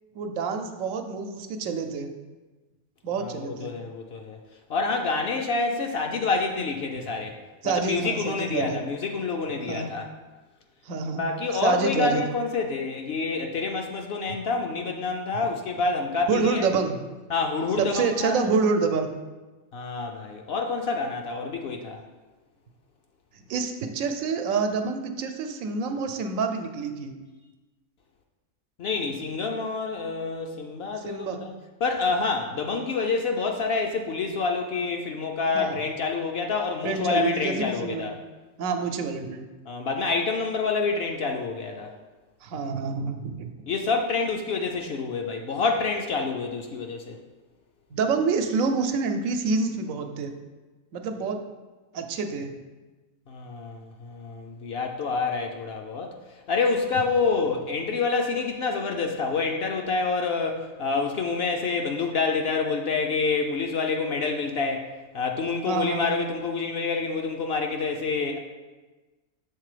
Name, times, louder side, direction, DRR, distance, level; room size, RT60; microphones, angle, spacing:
voice 1, 0.1-2.1 3.0-3.7 7.6-8.8 9.7-9.9 10.9-11.2 11.5-12.2 15.4-15.5 16.3-17.0 17.8-19.1 23.5-27.1 31.1-31.4 35.5-35.8 36.8-38.1 38.6-39.5 42.4-43.5 47.9-50.3 50.9-51.4 51.9-52.5 65.7-66.2, right 4 dB, 90° right, 6 dB, 1.0 m, -27 dB
voice 2, 3.2-4.4 4.7-7.4 7.6-10.1 11.2-16.6 17.3-18.4 19.7-22.0 28.8-31.5 31.8-38.2 39.7-41.9 43.7-47.2 53.3-56.2 56.5-64.9 65.1-68.4, left 4 dB, 60° left, 3 dB, 0.7 m, -27 dB
6.6 x 3.7 x 4.9 m, 1.2 s
omnidirectional pair, 1.3 m